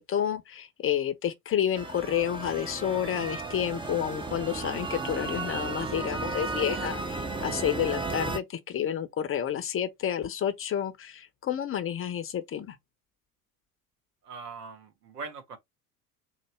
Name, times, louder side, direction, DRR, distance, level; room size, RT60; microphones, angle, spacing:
voice 1, 0.0-12.8, left 9 dB, 30° left, 0.6 m, -30 dB
sound 1, 1.7-8.4, right 3 dB, 10° right, 0.6 m, -34 dB
voice 2, 14.2-15.6, right 4 dB, 80° right, 1.0 m, -41 dB
4.0 x 2.1 x 3.3 m
figure-of-eight pair, 65°, 46 cm